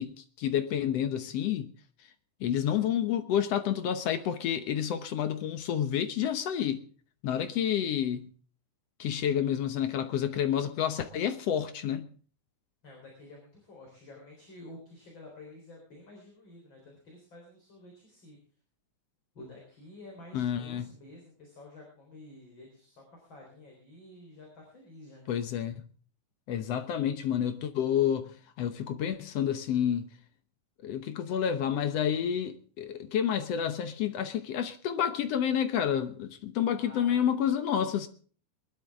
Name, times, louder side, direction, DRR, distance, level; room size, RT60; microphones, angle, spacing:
voice 1, 0.0-1.7 2.4-6.8 7.2-8.3 9.0-12.1 20.3-20.9 25.3-25.8 26.5-28.3 28.6-30.1 30.8-38.1, left 9 dB, 65° left, 1.7 m, -29 dB
voice 2, 12.8-18.4 19.3-25.3 36.6-37.2, left 1 dB, 35° left, 4.4 m, -50 dB
21.5 x 12.0 x 3.6 m
omnidirectional pair, 3.7 m